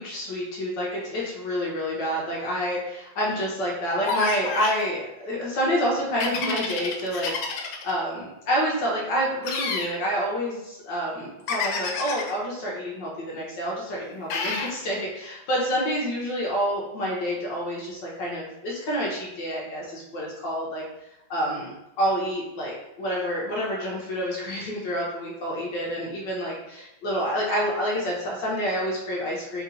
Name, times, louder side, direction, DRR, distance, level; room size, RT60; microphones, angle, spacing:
voice 1, 0.0-20.8 21.3-29.6, equal, 65° left, -4 dB, 1.4 m, -28 dB
sound 1, 4.0-4.8 6.2-7.9 9.4-9.9 11.5-12.3 14.3-14.7, left 4 dB, 90° left, 1.5 m, -29 dB
3.7 x 2.9 x 3.8 m, 0.89 s
omnidirectional pair, 2.4 m